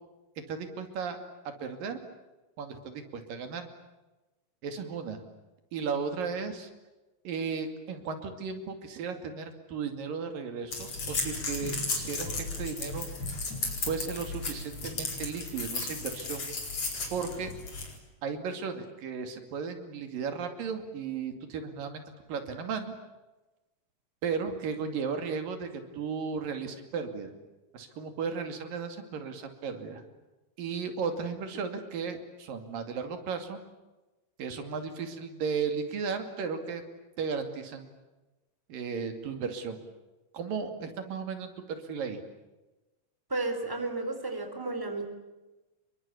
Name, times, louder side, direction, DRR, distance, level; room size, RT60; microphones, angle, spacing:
voice 1, 0.5-1.2 1.6-2.0 2.6-3.7 4.6-5.2 5.7-6.7 7.2-13.1 13.8-16.4 17.1-17.5 18.2-22.0 22.3-22.9 24.2-27.3 27.7-30.0 30.6-33.6 34.4-36.9 37.2-37.9 38.7-39.8 40.3-42.2, right 5 dB, 85° right, 7 dB, 4.2 m, -35 dB
sound 1, 10.7-18.0, left 3 dB, 45° left, 5.5 m, -35 dB
voice 2, 43.3-45.1, right 2 dB, 5° right, 6 dB, 3.8 m, -32 dB
28.5 x 23.0 x 8.6 m, 1.1 s
omnidirectional pair, 3.9 m